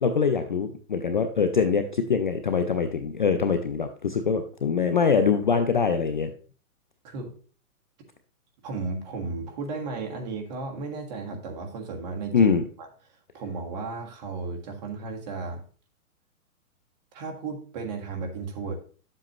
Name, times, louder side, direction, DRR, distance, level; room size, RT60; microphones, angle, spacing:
voice 1, 0.0-6.3 12.3-12.6, left 6 dB, 35° left, 7 dB, 0.4 m, -23 dB
voice 2, 8.6-12.5 12.8-12.9 13.3-15.6 17.1-18.7, right 4 dB, 30° right, 2 dB, 1.6 m, -34 dB
9.7 x 7.7 x 3.0 m, 0.40 s
hypercardioid pair, 160°, 45 cm